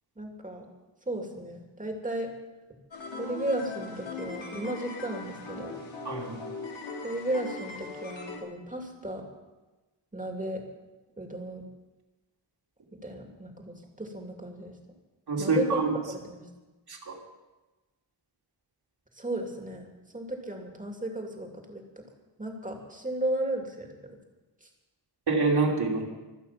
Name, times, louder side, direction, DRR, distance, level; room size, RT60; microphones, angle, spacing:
voice 1, 0.2-0.6 1.1-2.3 3.2-5.7 7.0-9.2 10.1-10.6 11.2-11.6 12.9-14.7 15.4-15.8 16.1-16.5 19.1-19.8 20.1-22.0 22.4-24.0 24.6-24.7, right 1 dB, 15° right, 2 dB, 2.3 m, -34 dB
sound 1, 2.9-8.4, left 4 dB, 80° left, 3.2 m, -39 dB
voice 2, 6.0-6.4 15.3-15.9 16.9-17.2 25.3-26.0, right 3 dB, 60° right, 0 dB, 2.8 m, -26 dB
25.5 x 8.9 x 5.8 m, 1.1 s
wide cardioid pair, 170°, 45 cm